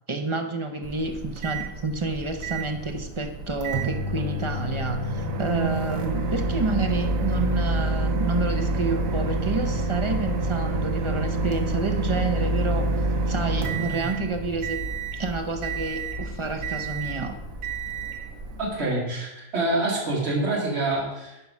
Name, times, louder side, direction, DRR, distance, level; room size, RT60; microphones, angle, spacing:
voice 1, 0.1-12.9 13.2-14.8 15.1-17.4, right 3 dB, 30° right, 5 dB, 0.6 m, -29 dB
Microwave oven, 0.8-18.8, right 2 dB, 70° right, 1.4 m, -28 dB
voice 2, 18.6-21.4, right 2 dB, 45° right, -3 dB, 2.4 m, -26 dB
11.0 x 4.7 x 5.4 m, 0.94 s
omnidirectional pair, 1.5 m